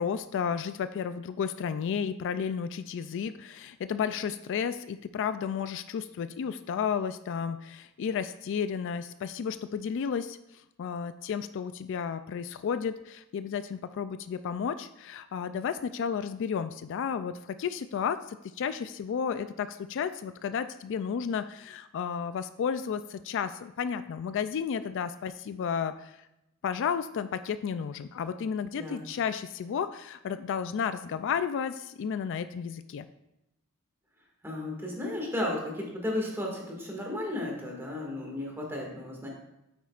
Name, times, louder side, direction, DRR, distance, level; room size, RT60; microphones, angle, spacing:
voice 1, 0.0-10.4 10.8-26.1 26.6-33.1, left 7 dB, 60° left, 12 dB, 0.3 m, -32 dB
voice 2, 34.4-39.3, left 1 dB, 10° right, -2 dB, 2.0 m, -34 dB
9.3 x 8.1 x 2.5 m, 0.88 s
head